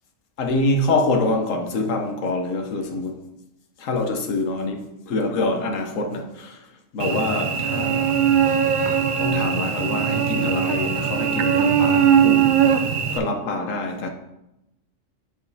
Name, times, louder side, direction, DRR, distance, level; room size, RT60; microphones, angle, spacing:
voice 1, 0.4-3.2 3.8-6.6 6.9-8.1 9.2-12.6 13.1-14.1, left 2 dB, 75° left, 1.2 m, -25 dB
Cricket / Buzz, 7.0-13.2, right 8 dB, 60° right, 0.5 m, -20 dB
9.4 x 5.1 x 2.7 m
omnidirectional pair, 1.4 m